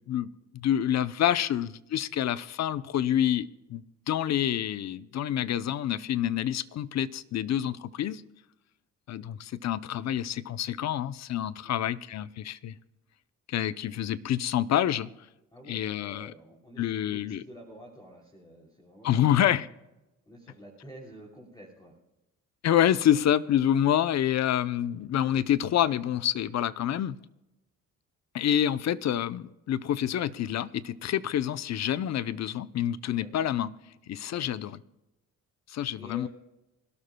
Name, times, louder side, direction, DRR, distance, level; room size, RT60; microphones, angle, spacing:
voice 1, 0.0-8.2 9.1-12.8 13.5-15.1 15.7-16.3 16.8-17.4 19.0-19.7 22.6-27.2 28.3-33.7 34.1-34.8 35.7-36.3, left 11 dB, 60° left, 0.8 m, -27 dB
voice 2, 15.5-19.4 20.3-21.9 33.2-33.3 34.3-34.5 36.0-36.3, equal, 15° left, 3.2 m, -49 dB
25.5 x 12.5 x 2.3 m
cardioid pair, 90°, 30 cm